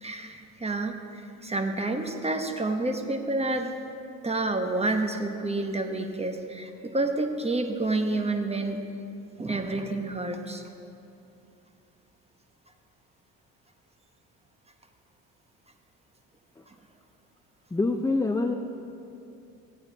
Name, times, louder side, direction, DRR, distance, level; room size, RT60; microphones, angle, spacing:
voice 1, 0.0-3.7 4.2-8.8 9.4-10.6, right 2 dB, 15° right, 5 dB, 1.1 m, -29 dB
voice 2, 17.7-18.6, left 3 dB, 10° left, 5 dB, 0.5 m, -25 dB
14.5 x 8.8 x 4.1 m, 2.8 s
hypercardioid pair, 60°, 38 cm